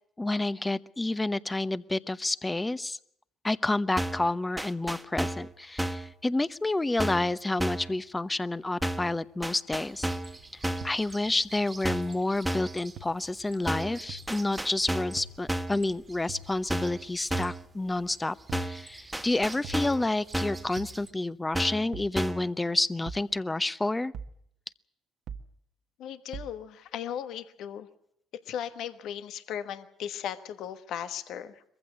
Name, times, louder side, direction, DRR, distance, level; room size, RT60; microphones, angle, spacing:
voice 1, 0.2-3.0 3.4-10.1 10.5-18.4 18.6-24.1, left 2 dB, 20° left, 16 dB, 0.9 m, -29 dB
sound 1, 4.0-4.3 4.6-5.5 5.8-6.1 7.0-7.3 7.6-7.9 8.8-9.1 9.4-10.4 10.6-11.0 11.8-12.2 12.5-12.8 13.7-14.0 14.3-15.2 15.5-15.8 16.7-17.0 17.3-17.6 18.5-18.8 19.1-20.1 20.3-20.7 21.5-21.9 22.2-22.5, right 1 dB, 5° right, 1.6 m, -32 dB
sound 2, 9.8-21.1, right 3 dB, 30° right, 1.8 m, -50 dB
sound 3, 10.8-10.9 11.9-12.0 13.0-13.1 14.1-14.2 15.2-15.3 16.3-16.5 17.3-17.6 18.5-18.7 19.6-19.9 20.8-21.0 21.9-22.1 23.1-23.3 24.1-24.4 25.3-25.5 26.3-26.5, right 5 dB, 65° right, 1.4 m, -41 dB
voice 2, 26.0-27.9 28.4-31.6, left 9 dB, 70° left, 11 dB, 1.3 m, -37 dB
22.5 x 15.0 x 9.9 m, 0.69 s
hypercardioid pair, 60°, 0 cm